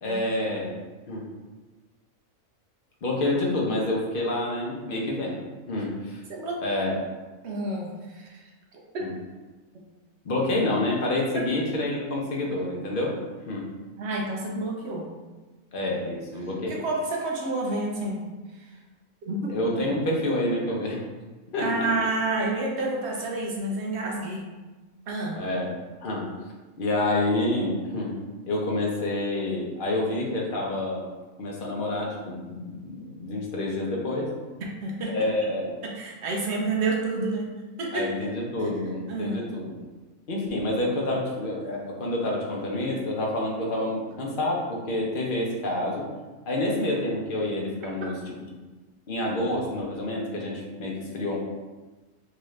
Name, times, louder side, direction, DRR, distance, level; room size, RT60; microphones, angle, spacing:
voice 1, 0.0-0.7 1.1-1.3 3.0-5.4 5.7-6.2 6.6-7.0 9.0-9.1 10.2-13.1 13.5-13.7 15.7-16.8 19.5-21.0 21.5-21.8 25.4-25.7 26.0-26.3 26.8-28.2 28.5-31.1 31.4-34.3 35.1-35.8 37.9-39.7 40.3-46.1 46.4-48.1 49.1-51.4, left 1 dB, 50° left, -2 dB, 0.8 m, -28 dB
voice 2, 6.3-6.6 7.4-8.4 8.7-9.1 14.0-15.1 16.7-18.3 18.5-18.7 19.2-19.6 19.8-19.9 21.6-24.5 25.1-25.4 34.6-35.2 35.8-37.5 37.8-38.1 39.1-39.5 48.0-48.1, right 2 dB, 60° right, -1 dB, 0.8 m, -29 dB
3.8 x 2.5 x 3.2 m, 1.2 s
omnidirectional pair, 1.4 m